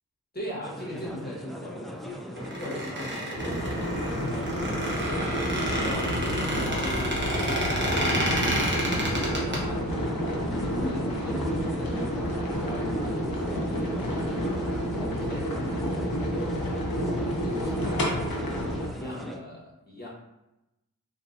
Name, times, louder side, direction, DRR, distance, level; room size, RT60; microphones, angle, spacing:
voice 1, 0.3-5.1 5.6-6.1 6.5-9.9 10.3-14.4 15.0-16.9 17.4-20.1, left 1 dB, 25° left, -3 dB, 1.2 m, -40 dB
sound 1, 0.6-19.4, equal, ahead, 0.4 m, -40 dB
Squeak, 2.4-9.6, equal, 30° right, 1.0 m, -29 dB
sound 2, 3.3-18.9, equal, 70° left, 0.9 m, -30 dB
4.0 x 2.6 x 2.5 m, 0.92 s
cardioid pair, 55°, 36 cm